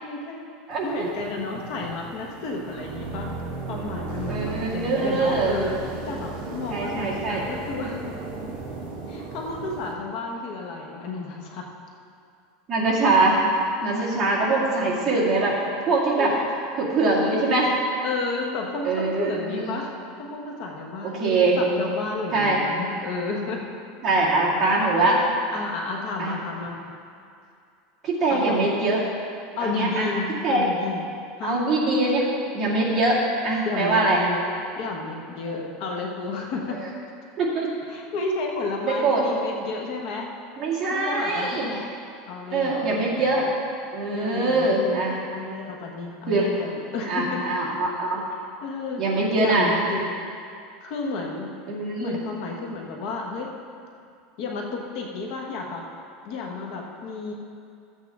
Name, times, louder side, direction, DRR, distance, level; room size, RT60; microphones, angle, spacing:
voice 1, 0.0-0.4 0.8-3.3 3.7-5.8 6.0-8.0 9.1-11.7 13.0-13.2 14.4-14.5 16.2-16.4 18.0-19.9 20.2-21.2 21.6-23.6 25.0-25.2 25.5-26.9 28.3-28.7 29.6-31.6 33.6-34.5 34.7-36.8 37.9-40.3 40.9-41.9 42.3-43.3 44.1-45.0 45.3-47.4 48.3-49.0 49.3-50.0 50.8-51.5 52.0-53.5 54.4-55.9 56.2-57.3, left 3 dB, 50° left, 0 dB, 1.1 m, -32 dB
voice 2, 0.7-1.1 4.3-5.6 6.7-7.4 12.7-13.4 13.8-15.5 15.8-16.3 16.8-17.7 18.8-19.8 21.0-21.6 22.3-22.6 24.0-25.2 26.2-26.3 28.0-29.0 29.6-30.1 30.4-30.6 31.4-32.3 32.5-34.2 35.5-35.6 36.8-36.9 37.4-37.7 38.8-39.2 40.6-41.7 42.5-43.4 43.9-45.1 46.3-46.5 47.1-48.2 49.0-49.7 51.7-52.2, right 2 dB, 25° right, -7 dB, 2.2 m, -23 dB
sound 1, 0.7-9.9, right 3 dB, 65° right, 2.1 m, -35 dB
13.0 x 8.4 x 3.6 m, 2.4 s
supercardioid pair, 165°, 0 cm